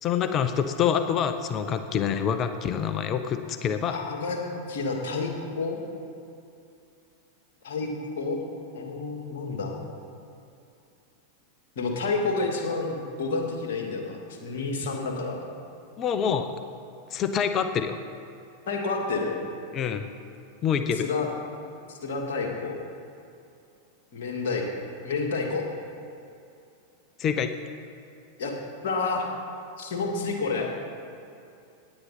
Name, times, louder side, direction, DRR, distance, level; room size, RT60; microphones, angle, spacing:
voice 1, 0.0-4.0 14.8-14.9 16.0-16.5 17.1-18.0 19.7-20.0 20.6-21.1 27.2-27.5, left 7 dB, 30° left, 9 dB, 0.7 m, -26 dB
voice 2, 3.9-4.4 4.7-5.8 7.6-8.4 8.7-9.8 11.8-15.4 18.7-19.4 20.9-21.3 21.9-22.7 24.1-24.6 25.0-25.7 28.4-28.5 28.8-29.3 29.8-30.7, left 3 dB, 55° left, 1 dB, 2.1 m, -29 dB
17.5 x 9.5 x 4.3 m, 2.6 s
figure-of-eight pair, 90°, 0 cm